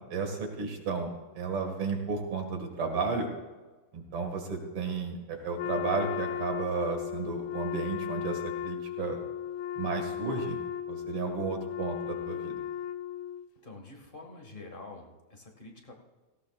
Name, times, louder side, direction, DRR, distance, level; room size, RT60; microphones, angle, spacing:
voice 1, 0.1-1.1 1.4-3.3 3.9-9.2 9.8-10.6 10.9-12.6, right 4 dB, 85° right, 3 dB, 2.9 m, -33 dB
Wind instrument woodwind instrument, 5.6-13.5, left 10 dB, 75° left, 1.4 m, -36 dB
voice 2, 13.6-15.9, left 2 dB, 25° left, 2 dB, 1.8 m, -47 dB
17.5 x 17.0 x 2.4 m, 1.3 s
omnidirectional pair, 2.4 m